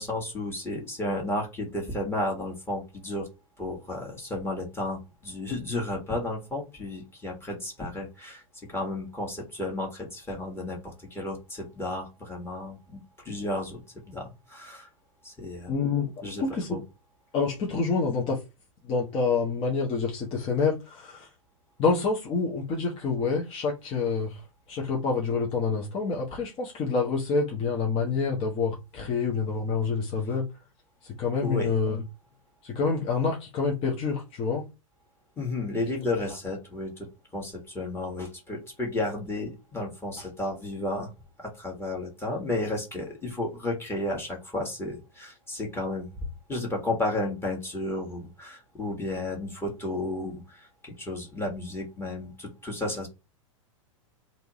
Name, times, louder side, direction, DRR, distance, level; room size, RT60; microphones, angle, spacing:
voice 1, 0.0-3.3 3.6-8.4 8.7-13.8 14.1-14.9 15.2-15.7 16.2-16.4 16.7-16.8 31.4-31.7 35.4-37.1 37.3-41.1 41.4-46.1 46.5-53.1, left 2 dB, 15° left, 1.5 m, -33 dB
voice 2, 15.7-16.1 16.4-16.8 17.3-18.4 18.8-21.3 21.8-30.5 31.0-32.0 32.6-34.6, left 4 dB, 30° left, 1.0 m, -27 dB
3.3 x 2.7 x 3.0 m
hypercardioid pair, 115°, 17 cm